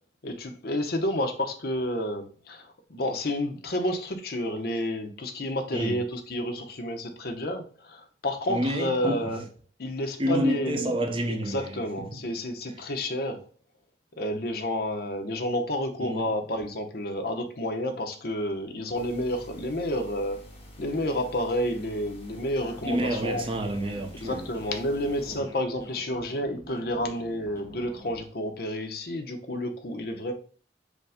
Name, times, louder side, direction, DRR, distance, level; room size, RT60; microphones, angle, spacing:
voice 1, 0.2-9.4 9.8-10.9 11.3-13.4 14.2-20.4 20.8-23.5 24.2-30.3, left 1 dB, 60° left, 0.8 m, -30 dB
voice 2, 8.5-9.3 10.2-11.8 12.1-12.2 16.0-16.3 22.9-24.5 25.3-25.5, right 1 dB, 30° right, 0.6 m, -29 dB
sound 1, 18.9-25.4, equal, 35° left, 1.4 m, -48 dB
sound 2, 22.6-28.3, equal, 15° left, 0.6 m, -48 dB
5.1 x 2.2 x 4.9 m
head